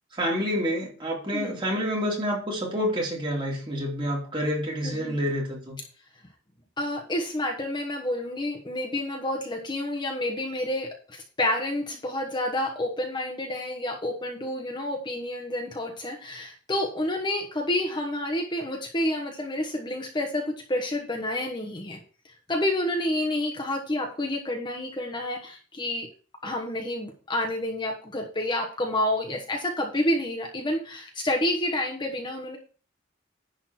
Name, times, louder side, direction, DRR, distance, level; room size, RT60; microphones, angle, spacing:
voice 1, 0.1-5.8, equal, 25° right, -2 dB, 2.7 m, -28 dB
voice 2, 4.8-5.2 6.8-22.0 22.5-26.1 26.4-32.6, left 1 dB, 25° left, 1 dB, 1.2 m, -29 dB
10.5 x 4.0 x 5.9 m, 0.39 s
head